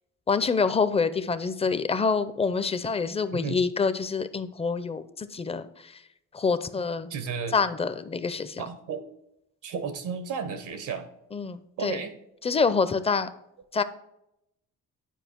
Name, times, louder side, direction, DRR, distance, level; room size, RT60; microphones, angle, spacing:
voice 1, 0.3-6.0 6.3-7.1 7.5-8.6 11.3-12.0 12.4-13.3 13.7-13.8, left 5 dB, 20° left, 13 dB, 0.5 m, -26 dB
voice 2, 7.1-7.6 8.6-9.0 9.6-11.1 11.8-12.1, right 6 dB, 85° right, 9 dB, 1.2 m, -33 dB
9.2 x 4.8 x 4.4 m, 0.83 s
cardioid pair, 90°, 30 cm